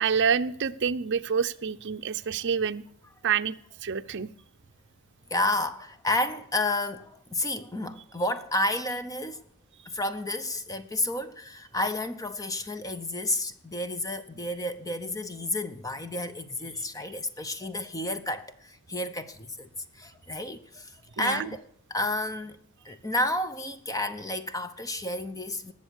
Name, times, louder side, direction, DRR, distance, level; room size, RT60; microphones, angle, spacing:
voice 1, 0.0-2.8 3.2-3.6 3.8-4.3 21.2-21.5, right 6 dB, 55° right, 0.6 m, -27 dB
voice 2, 5.3-9.4 9.9-19.7 19.9-21.6 21.9-22.6 22.8-25.7, left 1 dB, 15° left, 0.7 m, -31 dB
19.5 x 7.3 x 6.3 m
head